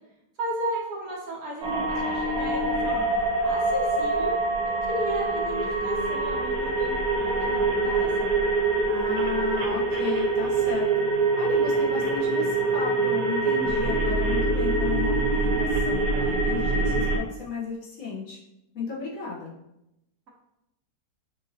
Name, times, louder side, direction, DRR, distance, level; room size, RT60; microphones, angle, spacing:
voice 1, 0.4-3.1 3.4-4.3 4.6-8.3, right 1 dB, 60° right, -3 dB, 1.3 m, -34 dB
sound 1, 1.6-17.2, right 3 dB, 90° right, 1.4 m, -25 dB
voice 2, 8.8-10.8 11.4-18.4 18.7-19.5, left 4 dB, 60° left, -6 dB, 1.4 m, -34 dB
5.7 x 2.8 x 2.7 m, 0.86 s
omnidirectional pair, 1.8 m